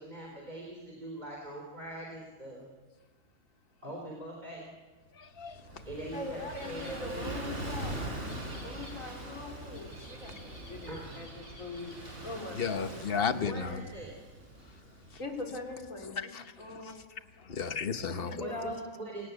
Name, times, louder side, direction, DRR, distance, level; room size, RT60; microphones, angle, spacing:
voice 1, 0.0-2.7 3.8-4.7 5.8-7.4 10.9-11.2 13.4-14.2 18.4-19.3, right 1 dB, 30° right, 3.9 m, -42 dB
voice 2, 5.2-5.6 12.6-13.8 16.2-16.9 17.4-18.4, left 6 dB, 45° left, 1.2 m, -34 dB
Gull seagull / Waves surf, 5.3-15.9, right 1 dB, 60° right, 5.2 m, -42 dB
voice 3, 6.1-8.0 8.6-13.6 15.2-16.3 16.6-17.0 18.1-18.8, left 2 dB, 75° left, 4.3 m, -42 dB
28.5 x 17.5 x 8.2 m
omnidirectional pair, 1.4 m